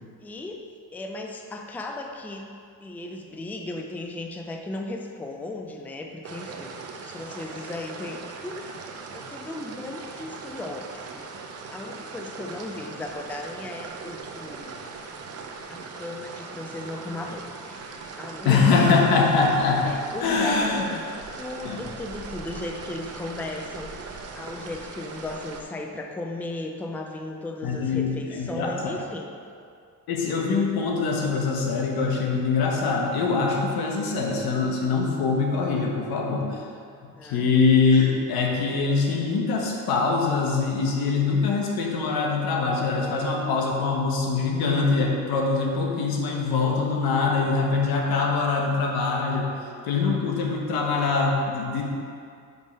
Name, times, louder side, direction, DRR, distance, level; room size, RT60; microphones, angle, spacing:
voice 1, 0.2-2.5 2.8-6.7 7.0-8.6 9.1-11.3 11.7-14.8 15.7-17.4 17.9-19.0 19.8-20.7 21.4-29.3 37.0-37.5, left 2 dB, 5° left, 2 dB, 0.4 m, -36 dB
sound 1, 6.2-25.6, right 4 dB, 40° right, 0.7 m, -39 dB
voice 2, 18.4-19.9 20.2-20.9 21.6-21.8 27.6-28.9 30.1-36.6 37.2-49.5 49.8-51.8, left 4 dB, 75° left, 0 dB, 1.3 m, -23 dB
5.5 x 5.3 x 5.3 m, 2.3 s
cardioid pair, 130°, 36 cm